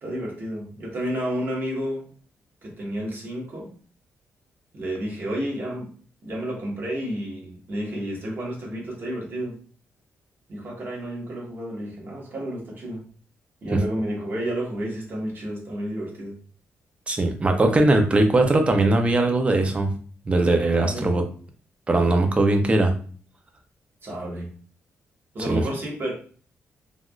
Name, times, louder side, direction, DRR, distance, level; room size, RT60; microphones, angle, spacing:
voice 1, 0.0-2.1 2.6-3.7 4.7-5.9 6.2-9.6 10.5-13.0 13.6-16.4 20.8-21.1 24.0-24.5 25.3-26.1, equal, 45° right, -2 dB, 1.2 m, -31 dB
voice 2, 17.1-19.9 20.3-21.2 21.9-22.9 25.5-25.6, right 2 dB, 25° right, 5 dB, 0.5 m, -20 dB
3.4 x 2.3 x 2.3 m, 0.43 s
cardioid pair, 115°, 5 cm